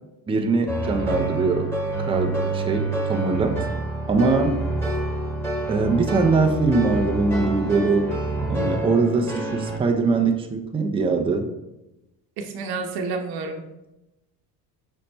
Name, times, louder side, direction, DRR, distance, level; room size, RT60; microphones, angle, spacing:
voice 1, 0.3-1.7 2.0-3.7 4.1-4.6 5.7-8.1 8.5-11.5, right 4 dB, 15° right, 4 dB, 0.5 m, -22 dB
sound 1, 0.7-9.8, right 2 dB, 5° left, 1.1 m, -27 dB
voice 2, 12.4-13.6, right 4 dB, 60° right, 3 dB, 0.9 m, -30 dB
5.3 x 2.1 x 4.3 m, 0.94 s
supercardioid pair, 85°, 42 cm